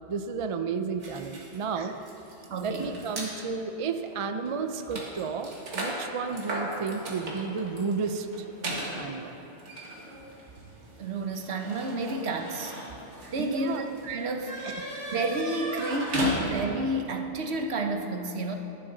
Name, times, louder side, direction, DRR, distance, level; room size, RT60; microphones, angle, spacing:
voice 1, 0.1-2.0 2.6-5.5 5.7-8.5 9.0-9.3 13.4-13.8 14.6-14.7, right 5 dB, 50° right, 8 dB, 0.4 m, -32 dB
sound 1, 1.0-3.3 4.1-4.2 4.5-16.9, right 1 dB, 85° right, 2.0 m, -37 dB
voice 2, 2.5-2.9 11.0-12.8 13.3-14.5 15.1-18.6, right 2 dB, 65° right, 5 dB, 1.1 m, -30 dB
13.5 x 10.5 x 3.9 m, 2.9 s
omnidirectional pair, 1.2 m